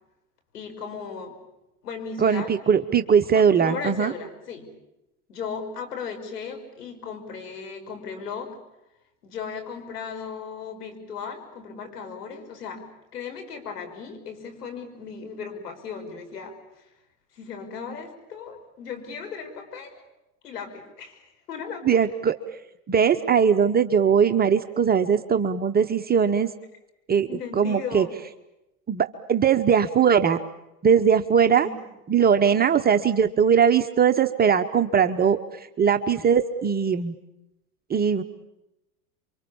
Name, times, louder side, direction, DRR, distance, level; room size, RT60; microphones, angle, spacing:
voice 1, 0.5-1.4 1.8-2.5 3.3-4.7 5.3-8.6 9.2-12.9 13.1-16.8 17.3-20.0 20.4-22.0 27.3-28.1 31.4-31.8, left 5 dB, 80° left, 5 dB, 5.9 m, -36 dB
voice 2, 2.2-4.1 21.8-22.3 22.9-26.5 27.1-27.3 27.5-28.1 28.9-30.4 30.8-31.7 32.1-37.1 37.9-38.2, right 7 dB, 20° right, 7 dB, 1.0 m, -20 dB
28.5 x 24.5 x 7.1 m, 0.91 s
hypercardioid pair, 100°, 46 cm